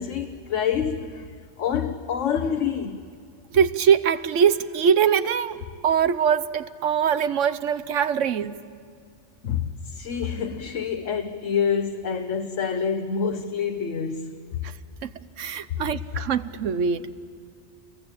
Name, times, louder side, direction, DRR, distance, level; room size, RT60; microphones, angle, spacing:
voice 1, 0.0-3.0 9.4-14.4, left 7 dB, 85° left, 1.4 m, -27 dB
voice 2, 3.5-5.6 5.8-8.6 14.6-14.7 15.0-15.1 15.4-17.1, right 7 dB, 90° right, 1.2 m, -22 dB
29.0 x 22.5 x 8.8 m
omnidirectional pair, 1.2 m